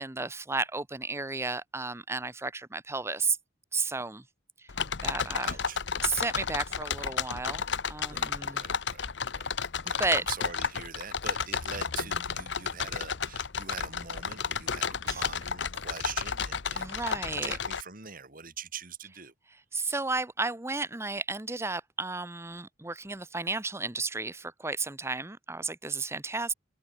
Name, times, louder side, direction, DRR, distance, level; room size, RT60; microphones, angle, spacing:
voice 1, 0.0-3.4 3.7-4.2 5.0-5.6 6.0-8.7 9.8-10.2 15.0-15.2 16.7-17.5 19.7-26.5, right 3 dB, 15° right, 0.9 m, -33 dB
sound 1, 4.7-17.8, left 6 dB, 60° left, 1.0 m, -32 dB
voice 2, 5.4-5.8 8.1-9.5 9.8-19.3, right 6 dB, 45° right, 3.8 m, -43 dB
open air
head